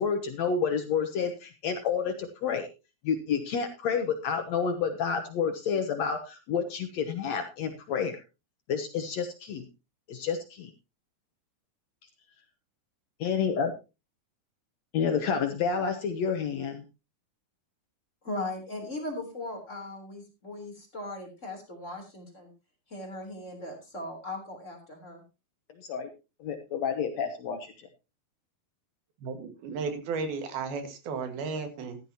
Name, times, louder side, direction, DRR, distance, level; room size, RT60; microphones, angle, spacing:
voice 1, 0.0-2.7 3.0-8.2 8.7-9.6 10.1-10.7 13.2-13.7 14.9-16.8 25.8-26.1 26.4-27.9, left 6 dB, 85° left, 6 dB, 1.5 m, -29 dB
voice 2, 18.2-22.5 22.9-25.2, left 2 dB, 20° left, 1 dB, 3.3 m, -38 dB
voice 3, 29.2-32.0, right 4 dB, 70° right, 7 dB, 3.5 m, -34 dB
14.5 x 12.0 x 2.9 m, 0.28 s
omnidirectional pair, 4.7 m